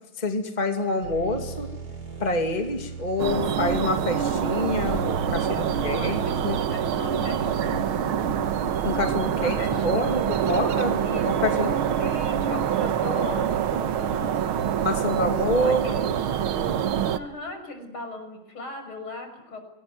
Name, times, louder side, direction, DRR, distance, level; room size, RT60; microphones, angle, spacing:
voice 1, 0.2-1.7 2.2-6.2 6.4-6.6 8.8-9.6 9.8-11.7 14.8-15.9, left 2 dB, 20° left, 5 dB, 2.6 m, -27 dB
sound 1, 1.0-9.0, right 4 dB, 50° right, 5.6 m, -38 dB
sound 2, 3.2-17.2, right 8 dB, 85° right, 2.0 m, -25 dB
voice 2, 5.5-7.9 9.4-10.6 11.0-14.7 15.6-16.2 17.1-19.6, left 2 dB, 80° left, 5 dB, 7.3 m, -38 dB
26.0 x 20.5 x 9.5 m, 0.88 s
omnidirectional pair, 2.3 m